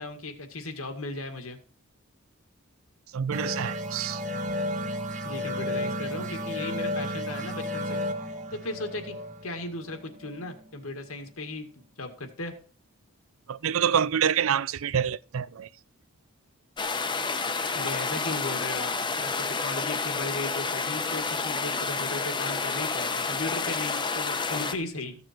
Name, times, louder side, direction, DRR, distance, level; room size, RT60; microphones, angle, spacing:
voice 1, 0.0-1.6 5.2-8.0 8.5-9.2 9.4-12.5 17.7-18.9 19.2-25.2, left 2 dB, 85° left, 2.0 m, -36 dB
voice 2, 3.1-4.2 13.5-15.7, right 8 dB, 75° right, 0.4 m, -26 dB
sound 1, 3.3-10.6, equal, 35° right, 1.2 m, -33 dB
sound 2, 16.8-24.7, left 4 dB, 20° left, 0.8 m, -29 dB
15.0 x 6.8 x 4.4 m
head